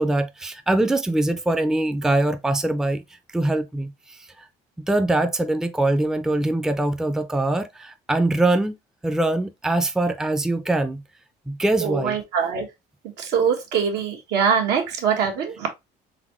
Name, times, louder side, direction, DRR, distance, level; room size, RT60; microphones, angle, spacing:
voice 1, 0.0-3.0 3.3-4.5 4.8-8.8 9.0-11.0 11.5-12.2, right 2 dB, 5° right, 0.4 m, -23 dB
voice 2, 11.8-12.7 13.2-15.7, right 7 dB, 85° right, 1.5 m, -23 dB
4.1 x 3.6 x 2.9 m
cardioid pair, 110°, 17 cm